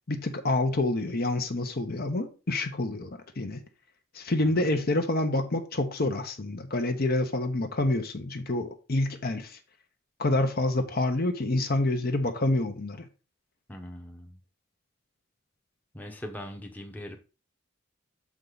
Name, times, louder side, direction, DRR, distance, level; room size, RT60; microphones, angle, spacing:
voice 1, 0.1-3.6 4.1-9.6 10.2-13.1, left 2 dB, 50° left, 0.9 m, -27 dB
voice 2, 13.7-14.4 15.9-17.2, equal, 10° left, 0.9 m, -41 dB
6.9 x 4.8 x 3.9 m
head